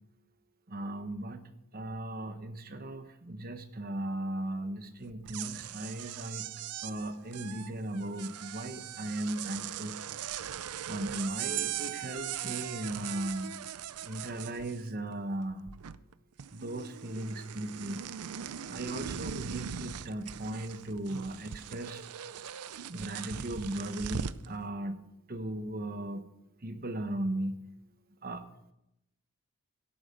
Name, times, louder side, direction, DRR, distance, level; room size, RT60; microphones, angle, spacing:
voice 1, 0.7-6.5 6.8-10.0 10.8-13.5 14.0-15.7 16.5-18.0 18.7-22.0 22.9-25.0 25.3-26.2 26.6-27.6 28.2-28.4, right 1 dB, 40° right, 9 dB, 1.1 m, -37 dB
sound 1, 5.1-15.1 15.4-16.1 16.4-24.5, right 9 dB, 90° right, 0.6 m, -40 dB
13.0 x 11.5 x 5.3 m, 0.86 s
head